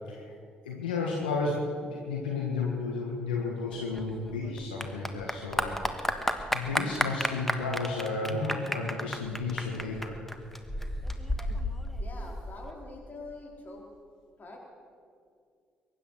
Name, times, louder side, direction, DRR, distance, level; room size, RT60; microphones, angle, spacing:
voice 1, 0.6-5.8 6.5-10.2, left 3 dB, 80° left, -1 dB, 1.5 m, -32 dB
Clapping / Applause, 3.7-12.7, equal, 5° left, 1.5 m, -33 dB
voice 2, 12.0-13.9 14.4-14.6, left 2 dB, 35° left, 0 dB, 4.1 m, -44 dB
22.5 x 10.0 x 6.3 m, 2.2 s
figure-of-eight pair, 45°, 5 cm